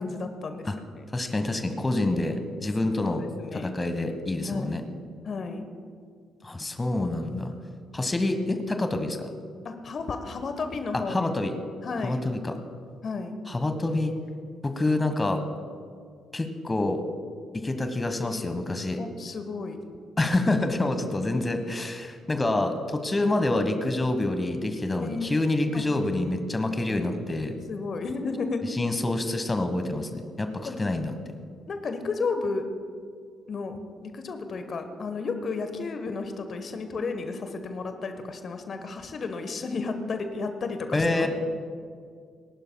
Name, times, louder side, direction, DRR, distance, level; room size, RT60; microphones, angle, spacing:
voice 1, 0.0-0.7 0.9-1.0 3.0-3.7 4.5-4.9 5.2-5.6 9.6-11.3 11.8-12.2 13.0-13.4 18.2-18.7 19.0-19.8 25.0-25.5 25.7-25.8 27.7-28.7 30.6-30.8 31.7-32.7 33.5-41.3, left 4 dB, 45° left, 7 dB, 1.2 m, -33 dB
voice 2, 1.1-3.2 3.5-4.8 6.4-7.5 7.9-9.3 10.9-11.5 12.0-12.5 13.5-14.1 14.6-15.4 16.3-17.0 17.5-19.0 20.2-27.5 28.7-31.1 40.9-41.3, left 2 dB, 20° left, 7 dB, 1.3 m, -27 dB
27.5 x 12.0 x 2.3 m, 2.1 s
figure-of-eight pair, 45°, 0 cm